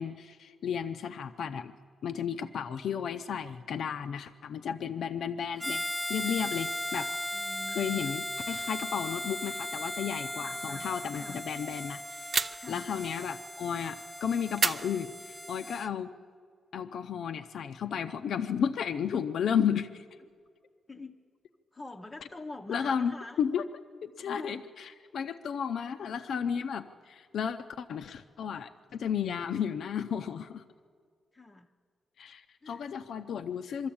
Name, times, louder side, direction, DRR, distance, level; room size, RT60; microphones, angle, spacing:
voice 1, 0.0-1.7 2.0-7.1 7.7-16.1 16.7-20.0 22.7-23.7 24.0-30.6 32.2-33.9, left 7 dB, 70° left, 7 dB, 0.5 m, -33 dB
Harmonica, 5.6-15.9, left 1 dB, 5° left, 1.0 m, -37 dB
voice 2, 7.3-8.2 10.4-11.4 12.6-12.9 20.9-21.2 21.7-23.4 24.3-24.7 31.3-31.7 32.6-32.9, left 2 dB, 20° left, 2 dB, 0.7 m, -45 dB
sound 1, 12.3-12.9 14.6-15.6, right 4 dB, 40° right, 0.5 m, -31 dB
23.0 x 13.5 x 8.6 m, 2.1 s
wide cardioid pair, 135°, 0 cm